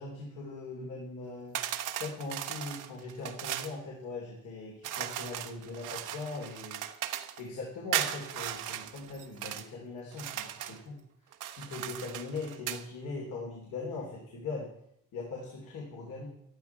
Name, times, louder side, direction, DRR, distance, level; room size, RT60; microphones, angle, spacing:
voice 1, 0.0-1.6 2.0-6.8 7.4-11.0 11.5-14.7 15.1-16.3, left 3 dB, 80° left, -2 dB, 3.4 m, -40 dB
sound 1, 1.5-3.8 4.8-7.4 7.9-9.7 10.1-10.8 11.3-12.8, right 11 dB, 85° right, 1.0 m, -37 dB
13.0 x 12.5 x 4.7 m, 0.74 s
cardioid pair, 90°, 30 cm